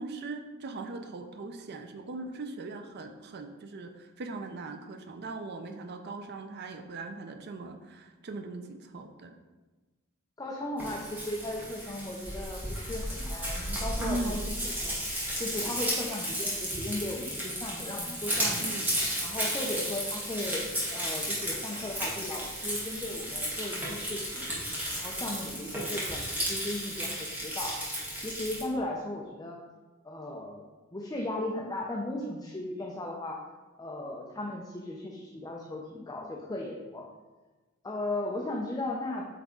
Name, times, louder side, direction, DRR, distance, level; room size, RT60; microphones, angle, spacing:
voice 1, 0.0-9.3 14.0-14.4 18.6-18.9, right 2 dB, 50° right, 6 dB, 0.5 m, -39 dB
voice 2, 10.4-15.0 15.4-18.7 19.2-24.5 24.9-27.9 28.1-29.6 30.0-30.6 30.9-33.4 33.8-37.1 37.8-39.3, left 1 dB, 20° left, 0 dB, 0.5 m, -36 dB
Frying (food), 10.8-28.6, equal, 10° right, 1.5 m, -33 dB
8.0 x 3.5 x 3.7 m, 1.2 s
head